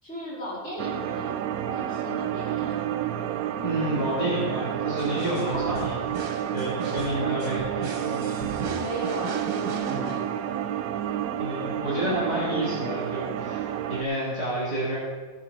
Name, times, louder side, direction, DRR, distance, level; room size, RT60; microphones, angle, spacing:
voice 1, 0.0-1.4 1.7-2.8 5.4-5.9 8.8-10.3, equal, 50° left, -8 dB, 4.6 m, -36 dB
sound 1, 0.8-14.0, right 10 dB, 90° right, 1.1 m, -30 dB
voice 2, 3.6-6.0 6.5-8.2 11.4-15.0, right 1 dB, 25° left, -8 dB, 3.3 m, -29 dB
sound 2, 5.0-10.8, right 4 dB, 70° right, 1.5 m, -37 dB
17.0 x 7.8 x 4.3 m, 1.4 s
omnidirectional pair, 1.5 m